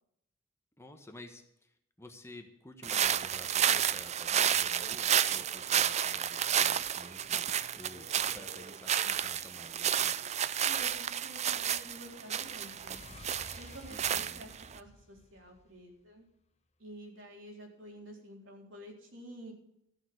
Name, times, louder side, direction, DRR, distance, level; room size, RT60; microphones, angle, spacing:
voice 1, 0.8-10.2 13.9-14.5, left 1 dB, 15° left, 5 dB, 1.2 m, -52 dB
sound 1, 2.8-14.8, right 9 dB, 35° right, 0.4 m, -31 dB
voice 2, 10.6-13.0 13.5-16.2 16.8-19.5, right 1 dB, 75° right, 0 dB, 4.0 m, -50 dB
sound 2, 11.2-16.1, left 2 dB, 35° left, 0.9 m, -55 dB
14.0 x 7.0 x 8.0 m, 0.75 s
head